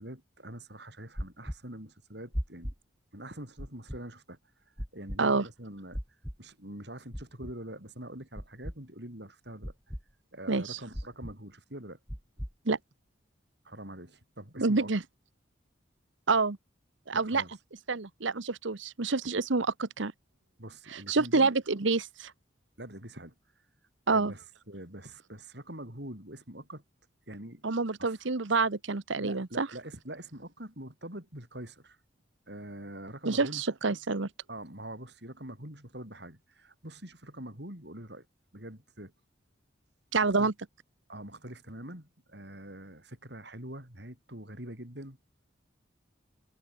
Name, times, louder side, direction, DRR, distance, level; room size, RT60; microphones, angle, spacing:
voice 1, 0.0-2.7 3.1-4.4 4.9-6.0 6.4-9.7 10.3-12.0 13.6-14.9 17.1-17.5 20.6-21.5 22.8-23.3 24.1-26.8 27.3-27.6 28.0-28.3 29.2-32.0 32.5-33.6 34.5-38.3 38.5-39.1 40.2-40.5 41.1-45.2, right 1 dB, 55° right, 7.9 m, -44 dB
sound 1, 1.2-1.6 2.3-2.8 3.6-4.0 4.8-5.2 5.9-6.4 7.1-7.5 8.4-8.8 9.6-10.0 10.9-11.3 12.1-12.5, equal, ahead, 3.6 m, -36 dB
voice 2, 10.5-10.8 12.6-12.8 14.6-15.0 16.3-16.6 17.1-17.4 17.9-20.1 20.9-22.3 24.1-24.3 27.6-29.7 33.3-34.3 40.1-40.5, right 4 dB, 75° right, 1.1 m, -27 dB
head